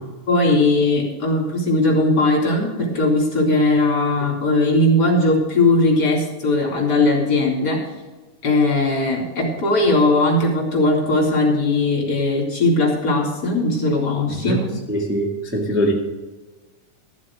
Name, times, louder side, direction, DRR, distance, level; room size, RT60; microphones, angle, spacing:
voice 1, 0.3-7.8 8.4-14.6, left 2 dB, 30° left, -1 dB, 4.1 m, -19 dB
voice 2, 14.9-15.9, right 1 dB, 5° right, -2 dB, 1.0 m, -22 dB
14.0 x 7.4 x 6.5 m, 1.2 s
omnidirectional pair, 3.9 m